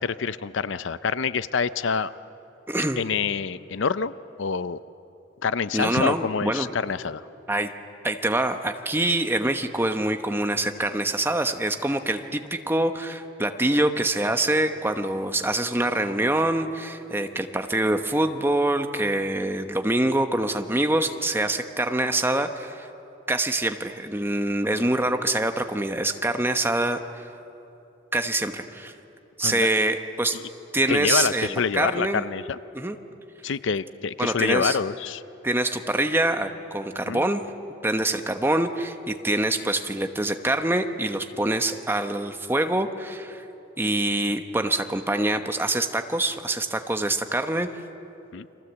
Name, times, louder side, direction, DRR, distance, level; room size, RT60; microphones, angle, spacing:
voice 1, 0.0-2.1 3.0-4.1 4.4-4.8 5.4-7.2 29.4-29.7 30.3-30.4 30.9-32.6 33.4-35.2 37.1-37.2 48.3-48.5, left 5 dB, 65° left, 15 dB, 0.6 m, -26 dB
voice 2, 2.7-3.0 5.7-6.7 7.5-7.7 8.0-22.9 23.3-27.2 28.1-28.9 29.4-30.4 30.7-32.2 32.7-33.0 34.2-34.8 35.4-37.4 37.8-43.4 43.8-47.7, right 1 dB, 10° right, 7 dB, 1.0 m, -25 dB
30.0 x 23.0 x 8.2 m, 2.9 s
head